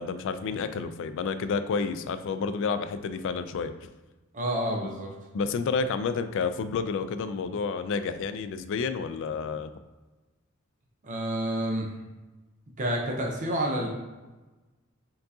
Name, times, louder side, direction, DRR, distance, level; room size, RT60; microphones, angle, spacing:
voice 1, 0.0-3.7 5.3-9.7, left 5 dB, 60° left, 10 dB, 0.3 m, -30 dB
voice 2, 4.3-5.1 11.0-11.9 12.8-13.9, right 1 dB, 35° right, 0 dB, 0.6 m, -29 dB
4.5 x 3.7 x 2.7 m, 1.2 s
head